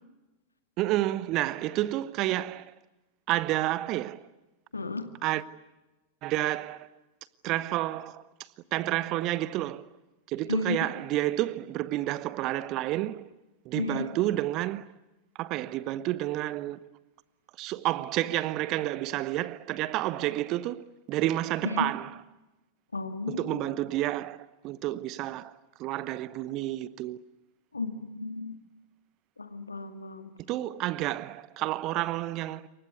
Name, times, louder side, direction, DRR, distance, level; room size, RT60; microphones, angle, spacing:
voice 1, 0.8-2.7 3.3-4.2 5.2-5.4 6.2-6.9 7.4-8.3 8.7-9.9 10.3-13.3 13.6-14.9 15.4-16.8 17.6-22.2 23.3-25.5 25.8-27.2 30.5-32.7, right 15 dB, 40° right, 1.0 m, -30 dB
voice 2, 4.7-5.1 10.5-10.8 13.8-14.1 21.6-21.9 22.9-23.7 27.7-28.6 29.4-30.3, left 3 dB, 80° left, 2.1 m, -33 dB
27.5 x 23.5 x 8.2 m
figure-of-eight pair, 90°, 0 cm